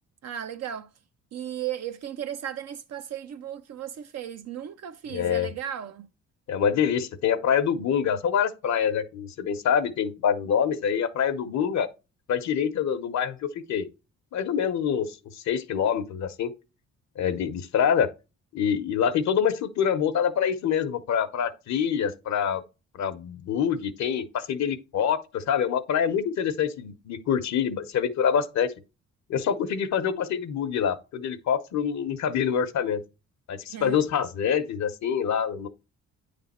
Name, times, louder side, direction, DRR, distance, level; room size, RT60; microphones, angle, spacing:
voice 1, 0.2-0.9 1.3-6.1 33.7-34.0, right 10 dB, 60° right, 0.6 m, -35 dB
voice 2, 5.1-5.5 6.5-11.9 12.3-13.9 14.3-15.2 15.5-16.5 17.2-18.1 18.5-22.6 22.9-28.7 29.3-33.0 33.5-35.7, left 8 dB, 65° left, 0.8 m, -26 dB
9.0 x 3.4 x 4.2 m
cardioid pair, 90°, 30 cm